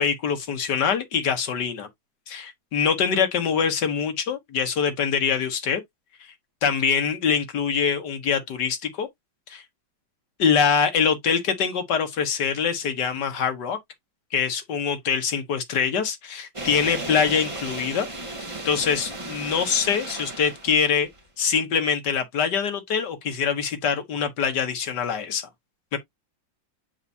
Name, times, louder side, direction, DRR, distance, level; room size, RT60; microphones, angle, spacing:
voice 1, 0.0-1.9 2.3-5.8 6.6-9.1 9.5-9.6 10.4-13.8 14.3-18.1 18.6-21.1 21.4-25.5 25.9-26.0, left 6 dB, 65° left, 1.8 m, -24 dB
sound 1, 16.5-21.2, right 2 dB, 15° right, 1.9 m, -35 dB
8.0 x 4.8 x 2.7 m
omnidirectional pair, 2.0 m